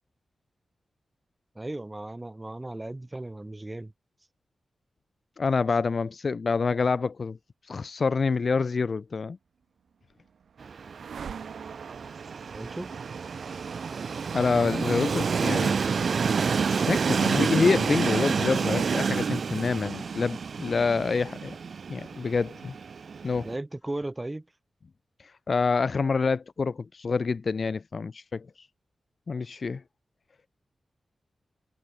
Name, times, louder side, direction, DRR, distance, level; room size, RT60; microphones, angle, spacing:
voice 1, 1.5-3.9 12.5-13.0 23.4-24.5, right 2 dB, 15° right, 3.1 m, -36 dB
voice 2, 5.4-7.4 7.7-9.4 14.3-15.7 16.7-21.6 21.9-22.7 23.2-23.5 25.5-28.5 29.3-29.8, left 4 dB, 40° left, 0.4 m, -27 dB
sound 1, 9.6-19.7, right 7 dB, 80° right, 2.6 m, -47 dB
Train, 10.6-23.6, right 5 dB, 55° right, 0.6 m, -29 dB
wide cardioid pair, 165°, 0 cm